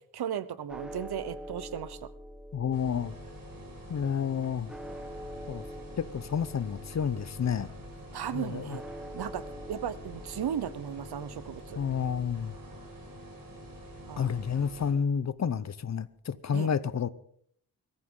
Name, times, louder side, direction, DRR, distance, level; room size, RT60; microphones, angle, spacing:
voice 1, 0.1-2.1 8.1-8.8 9.1-9.4 9.7-11.8 14.1-14.3 16.5-16.7, right 9 dB, 80° right, 1.0 m, -35 dB
sound 1, 0.7-14.9, equal, ahead, 1.2 m, -47 dB
voice 2, 2.5-3.1 3.9-4.7 5.5-5.6 6.0-7.7 8.3-8.8 11.8-12.5 14.2-17.1, left 7 dB, 45° left, 0.8 m, -30 dB
sound 2, 2.7-14.9, equal, 60° right, 5.7 m, -47 dB
22.5 x 14.0 x 3.9 m
wide cardioid pair, 110°, 38 cm